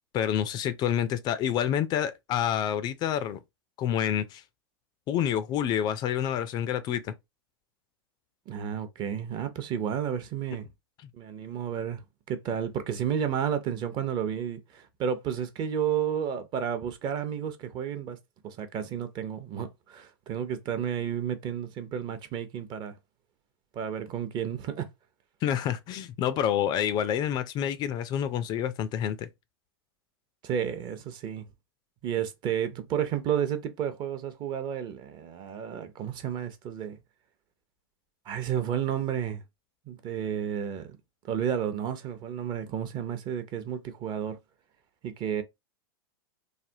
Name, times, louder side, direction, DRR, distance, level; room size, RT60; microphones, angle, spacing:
voice 1, 0.1-3.4 3.8-4.4 5.1-7.1 25.4-29.3, left 10 dB, 35° left, 0.4 m, -28 dB
voice 2, 8.5-10.7 11.1-12.0 12.3-18.2 18.4-22.9 23.7-24.9 30.4-31.4 32.0-37.0 38.3-39.4 39.9-41.0 41.3-44.4 45.0-45.4, right 8 dB, 35° right, 0.6 m, -31 dB
3.3 x 2.1 x 2.7 m
hypercardioid pair, 105°, 13 cm